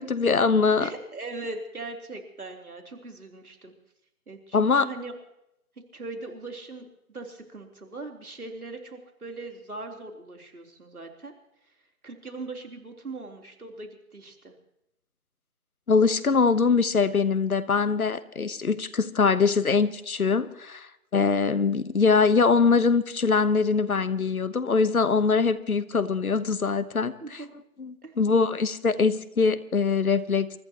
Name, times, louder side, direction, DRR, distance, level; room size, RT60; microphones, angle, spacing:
voice 1, 0.0-0.9 4.5-4.9 15.9-27.4 27.8-30.5, left 5 dB, 70° left, 14 dB, 1.2 m, -23 dB
voice 2, 0.8-3.7 4.3-5.1 5.9-11.3 12.0-14.6 16.3-16.5 27.2-27.5 28.0-28.1, right 3 dB, 75° right, 2 dB, 3.7 m, -40 dB
28.5 x 14.5 x 3.0 m, 0.83 s
figure-of-eight pair, 165°, 44 cm